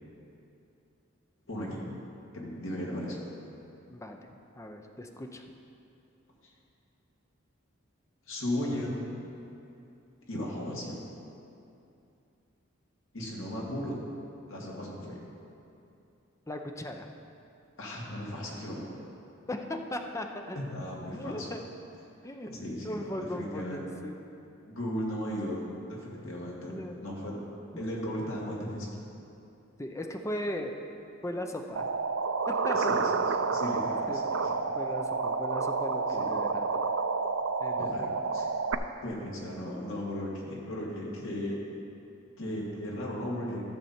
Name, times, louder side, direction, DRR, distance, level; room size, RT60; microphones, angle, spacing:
voice 1, 1.5-1.8 2.3-3.2 8.3-9.1 10.3-11.0 13.1-14.0 14.5-15.2 17.8-18.9 20.5-21.5 22.5-23.1 23.3-23.9 24.7-27.4 27.8-28.9 32.8-34.5 36.2-36.3 37.8-38.1 38.3-38.5 39.0-41.6 42.4-43.6, left 1 dB, 75° left, -3 dB, 2.1 m, -36 dB
voice 2, 3.9-5.4 16.5-17.1 19.5-20.6 21.1-21.6 22.2-22.5 22.8-24.2 26.7-26.9 27.7-27.8 29.8-30.8 31.2-31.9 32.5-33.0 34.1-34.4 34.7-36.8 37.6-38.1, left 1 dB, 15° left, 4 dB, 0.6 m, -38 dB
sound 1, 31.8-38.8, right 4 dB, 70° right, 0.4 m, -29 dB
14.0 x 6.8 x 4.4 m, 2.7 s
head